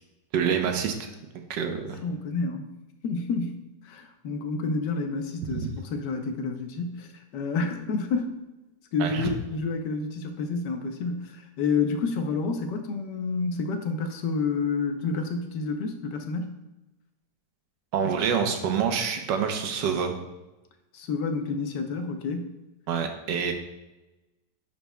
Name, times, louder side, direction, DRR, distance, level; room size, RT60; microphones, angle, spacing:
voice 1, 0.3-1.1 1.5-2.0 5.5-5.7 9.0-9.2 17.9-20.1 22.9-23.5, right 7 dB, 85° right, 5 dB, 1.4 m, -27 dB
voice 2, 1.6-2.7 3.0-8.4 8.9-16.6 20.9-22.5, left 4 dB, 80° left, 6 dB, 1.3 m, -29 dB
10.5 x 4.5 x 2.2 m, 1.0 s
omnidirectional pair, 1.9 m